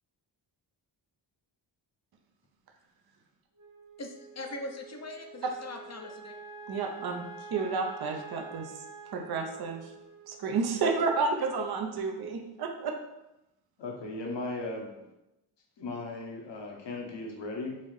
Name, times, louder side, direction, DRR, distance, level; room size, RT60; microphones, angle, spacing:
Wind instrument woodwind instrument, 3.5-12.0, right 3 dB, 85° right, 0.9 m, -48 dB
voice 1, 4.0-6.3, left 2 dB, 35° left, 3 dB, 0.7 m, -41 dB
voice 2, 6.7-8.7 9.1-9.9 10.3-13.0, right 4 dB, 50° right, 4 dB, 0.7 m, -31 dB
voice 3, 13.8-14.9 15.8-17.8, left 2 dB, 60° left, 0 dB, 1.1 m, -37 dB
4.1 x 2.5 x 3.2 m, 0.94 s
supercardioid pair, 45°, 49 cm